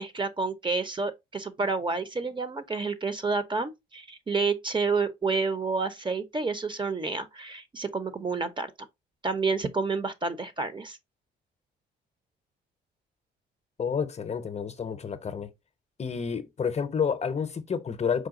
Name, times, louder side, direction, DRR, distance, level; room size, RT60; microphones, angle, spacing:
voice 1, 0.0-8.7 9.2-11.0, right 4 dB, 25° right, 0.7 m, -29 dB
voice 2, 13.8-15.5 16.0-18.3, left 6 dB, 35° left, 0.6 m, -30 dB
4.9 x 2.2 x 3.7 m
cardioid pair, 90°, 20 cm